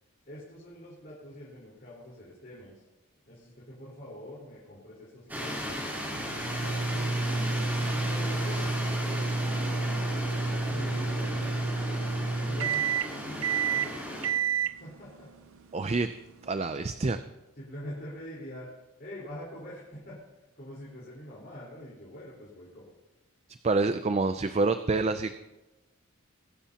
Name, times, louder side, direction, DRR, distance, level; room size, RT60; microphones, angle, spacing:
voice 1, 0.2-2.8 3.3-7.0 7.9-8.8 9.0-9.3 10.6-12.1 12.4-14.2 14.6-15.5 17.5-18.7 19.0-22.9, equal, 45° left, -7 dB, 4.3 m, -45 dB
sound 1, 5.3-14.3, equal, 10° right, 3.4 m, -36 dB
sound 2, 6.1-16.5, right 4 dB, 75° right, 0.7 m, -30 dB
voice 2, 15.7-16.1 16.4-17.2 23.6-25.4, right 3 dB, 30° right, 10 dB, 0.4 m, -27 dB
23.0 x 12.5 x 2.9 m, 1.0 s
head